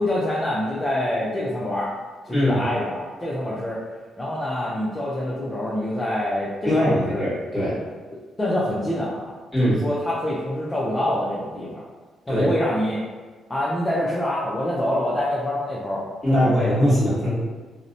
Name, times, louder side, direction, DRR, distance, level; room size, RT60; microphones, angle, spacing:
voice 1, 0.0-1.9 2.2-3.8 4.2-7.3 8.4-11.8 12.3-13.0 13.5-16.8, left 1 dB, 20° left, -6 dB, 0.4 m, -26 dB
voice 2, 2.3-2.6 6.6-7.8 9.5-9.8 12.3-12.5 16.2-17.3, equal, ahead, -10 dB, 1.3 m, -21 dB
2.7 x 2.0 x 2.6 m, 1.4 s
cardioid pair, 90°, 0 cm